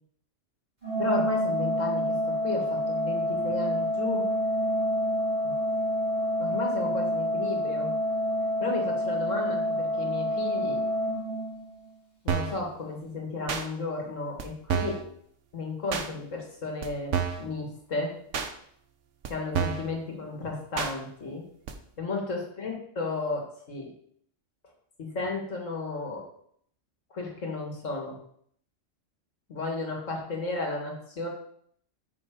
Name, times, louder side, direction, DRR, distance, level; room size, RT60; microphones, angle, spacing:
Organ, 0.8-11.9, equal, 35° right, 2.6 m, -28 dB
voice 1, 1.0-4.3 5.4-5.5 6.4-7.9 8.6-10.8 12.2-15.0 15.5-18.1 19.3-21.4 22.0-23.9 25.0-26.2 27.1-28.2 29.5-31.3, left 3 dB, 80° left, 0 dB, 2.3 m, -33 dB
sound 1, 12.3-12.6 13.5-13.6 14.4-14.5 14.7-15.0 15.9-16.1 16.8-16.9 17.1-17.5 18.3-18.5 19.2-19.3 19.5-19.9 20.8-20.9 21.7-21.8, right 7 dB, 70° right, 1.2 m, -29 dB
9.0 x 6.2 x 3.9 m, 0.65 s
omnidirectional pair, 1.3 m